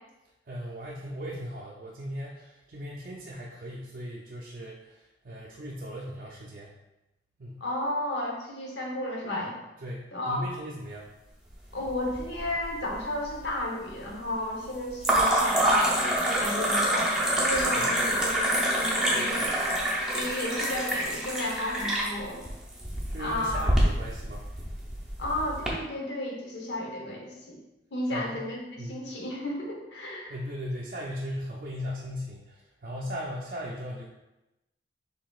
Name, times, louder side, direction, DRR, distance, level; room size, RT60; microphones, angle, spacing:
voice 1, 0.5-6.7 7.4-7.6 9.8-11.1 17.8-17.9 23.1-24.4 28.1-28.4 28.8-29.1 30.3-34.0, equal, 50° right, -5 dB, 0.5 m, -38 dB
voice 2, 7.6-9.5 10.1-10.5 11.7-19.5 19.8-22.5 23.2-23.7 25.2-27.6 27.9-30.3, left 1 dB, 75° left, -1 dB, 0.9 m, -33 dB
sound 1, 11.9-12.6 12.9-13.5 15.0-25.7, right 1 dB, 5° right, 0.6 m, -26 dB
4.7 x 3.4 x 2.3 m, 0.98 s
head